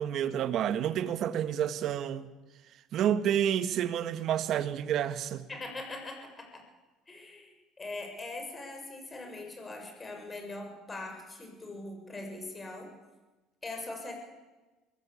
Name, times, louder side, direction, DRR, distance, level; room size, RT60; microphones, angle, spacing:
voice 1, 0.0-2.3 2.9-5.5, right 9 dB, 55° right, 1.7 m, -29 dB
voice 2, 5.5-6.6 7.1-12.9 13.6-14.1, left 2 dB, 20° left, 7.4 m, -41 dB
24.0 x 19.0 x 8.6 m
cardioid pair, 115°, 0 cm